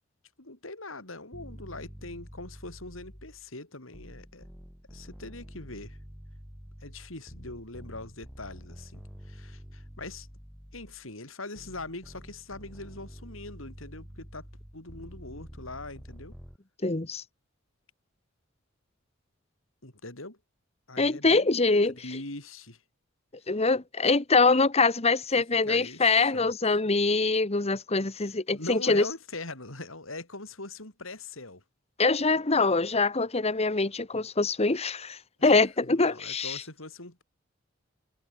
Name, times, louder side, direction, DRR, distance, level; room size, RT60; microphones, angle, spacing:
voice 1, 0.4-4.5 4.9-6.0 6.8-10.3 10.7-14.5 14.7-16.3 19.8-20.4 20.9-21.5 22.0-22.8 25.7-26.5 28.2-31.6 35.4-35.6 35.9-37.2, left 2 dB, 80° left, 6.0 m, -42 dB
sound 1, 1.3-3.5 3.9-11.1 11.6-16.6, equal, ahead, 7.6 m, -47 dB
voice 2, 16.8-17.2 21.0-22.0 23.5-29.0 32.0-36.6, left 3 dB, 30° left, 1.3 m, -24 dB
head